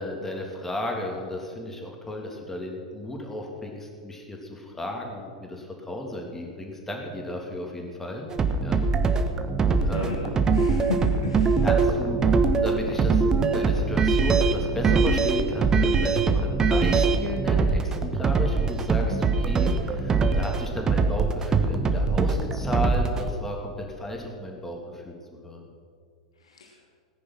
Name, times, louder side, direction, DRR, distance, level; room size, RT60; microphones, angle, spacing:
voice 1, 0.0-8.3 8.6-8.9 9.8-10.3 11.6-12.3 12.6-13.2 13.5-25.7, left 1 dB, 10° left, 1 dB, 3.0 m, -34 dB
sound 1, 8.3-23.3, right 4 dB, 20° right, 1.2 m, -22 dB
voice 2, 9.9-11.6 26.4-26.7, left 4 dB, 75° left, 2 dB, 1.4 m, -33 dB
19.0 x 10.0 x 6.1 m, 2.1 s
figure-of-eight pair, 90°, 3 cm